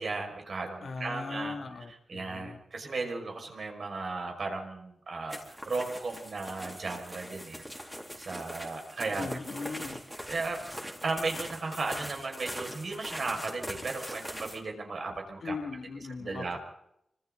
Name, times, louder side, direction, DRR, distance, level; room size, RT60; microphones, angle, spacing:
voice 1, 0.0-1.6 1.9-7.6 8.2-9.6 10.3-10.6 11.0-15.6 16.2-16.6, right 3 dB, 50° right, 2 dB, 5.7 m, -35 dB
voice 2, 0.8-2.6 9.2-10.0 15.4-16.6, left 4 dB, 60° left, 4 dB, 2.3 m, -39 dB
sound 1, 5.3-14.6, equal, 5° right, 3.7 m, -42 dB
27.5 x 25.5 x 4.0 m, 0.77 s
wide cardioid pair, 110°, 0 cm